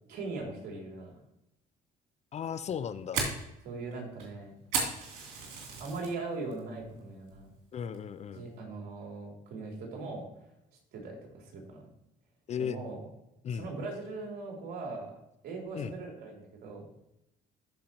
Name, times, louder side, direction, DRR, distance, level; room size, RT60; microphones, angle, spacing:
voice 1, 0.1-1.1 3.6-4.5 5.8-7.5 8.3-10.3 10.9-11.8 12.6-13.0 13.5-15.1 15.4-16.8, right 3 dB, 70° right, 0 dB, 3.1 m, -40 dB
voice 2, 2.3-3.3 7.7-8.5 12.5-12.8 13.4-13.7 15.7-15.9, left 8 dB, 40° left, 14 dB, 0.5 m, -36 dB
Fire, 2.6-6.1 6.5-6.9 7.3-7.4 7.9-8.3, right 4 dB, 85° right, 2.9 m, -35 dB
14.0 x 5.2 x 3.0 m, 0.85 s
cardioid pair, 110°, 17 cm